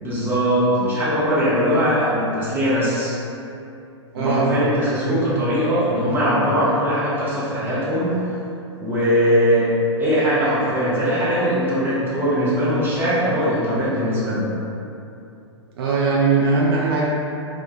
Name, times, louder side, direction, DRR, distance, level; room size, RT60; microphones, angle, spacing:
voice 1, 0.0-3.2 4.2-8.1 8.8-9.7 10.0-14.4, equal, 15° right, -9 dB, 0.6 m, -20 dB
voice 2, 4.1-4.5 4.9-5.3 15.8-17.1, right 4 dB, 55° right, -5 dB, 0.4 m, -20 dB
2.2 x 2.1 x 2.8 m, 2.7 s
figure-of-eight pair, 110°, 15 cm